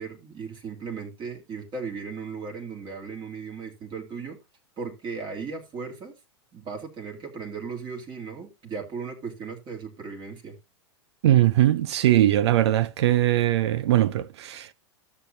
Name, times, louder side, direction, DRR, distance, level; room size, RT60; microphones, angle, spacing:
voice 1, 0.0-4.4 4.8-6.1 6.5-10.6, right 5 dB, 35° right, 2.5 m, -36 dB
voice 2, 11.2-14.7, right 13 dB, 70° right, 0.5 m, -21 dB
13.0 x 7.3 x 2.6 m
hypercardioid pair, 105°, 14 cm